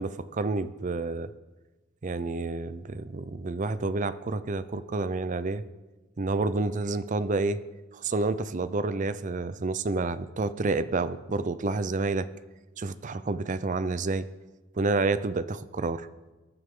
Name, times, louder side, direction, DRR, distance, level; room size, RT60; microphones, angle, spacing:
voice 1, 0.0-1.3 2.0-5.6 6.2-7.6 7.9-12.3 12.8-14.3 14.8-16.1, right 3 dB, 40° right, 14 dB, 0.5 m, -29 dB
22.0 x 9.3 x 3.7 m, 1.2 s
head